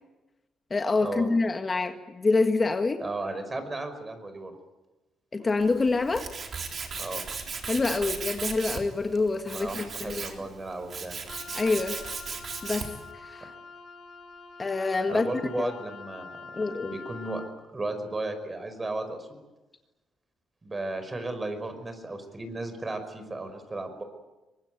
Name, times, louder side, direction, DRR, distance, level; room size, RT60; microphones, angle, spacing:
voice 1, 0.7-3.0 5.3-6.3 7.7-10.4 11.5-12.0 12.6-13.5 14.6-15.3 15.5-15.7 16.6-16.9, left 3 dB, 30° left, 6 dB, 1.7 m, -26 dB
voice 2, 3.0-4.6 7.0-7.3 9.5-11.2 15.1-16.4 16.8-17.4 17.7-19.4 20.6-24.0, right 2 dB, 25° right, 9 dB, 5.3 m, -35 dB
Tools, 5.6-13.1, right 5 dB, 45° right, 3.7 m, -37 dB
Wind instrument woodwind instrument, 11.3-17.6, left 4 dB, 60° left, 6.2 m, -45 dB
23.5 x 20.5 x 9.3 m, 1.1 s
cardioid pair, 90°, 0 cm